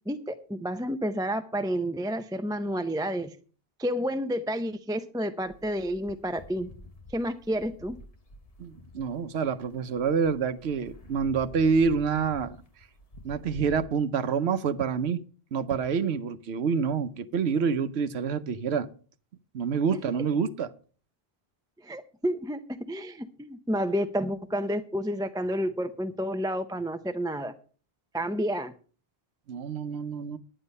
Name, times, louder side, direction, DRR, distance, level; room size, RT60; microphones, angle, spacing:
voice 1, 0.1-3.4 3.8-6.7 7.1-8.0 21.8-27.5 28.1-28.7, equal, 5° right, 0.4 m, -30 dB
sound 1, 5.4-13.9, left 1 dB, 35° left, 1.1 m, -48 dB
voice 2, 8.6-12.6 13.2-15.2 15.5-18.9 19.5-20.7 29.5-30.4, right 6 dB, 85° right, 1.0 m, -27 dB
10.0 x 10.0 x 5.3 m
omnidirectional pair, 1.1 m